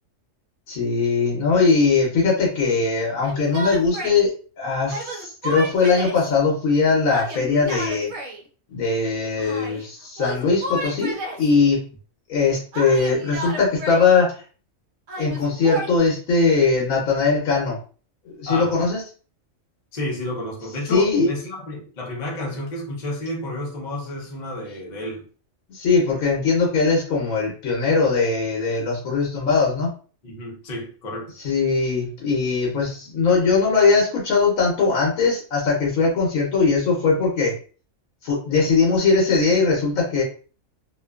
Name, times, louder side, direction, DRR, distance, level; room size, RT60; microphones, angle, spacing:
voice 1, 0.7-8.1 8.7-11.8 12.3-14.4 15.2-17.8 18.4-19.0 20.9-21.3 25.7-29.9 31.4-37.5 38.2-40.2, left 4 dB, 85° left, 1.2 m, -20 dB
Yell, 3.2-4.2 4.9-6.2 7.1-8.4 9.4-9.9 10.2-11.5 12.7-14.2 15.1-15.9, right 1 dB, 70° right, 0.9 m, -32 dB
voice 2, 18.5-18.8 19.9-25.3 30.2-31.3, left 1 dB, 40° left, 0.7 m, -31 dB
2.7 x 2.2 x 2.3 m
omnidirectional pair, 1.4 m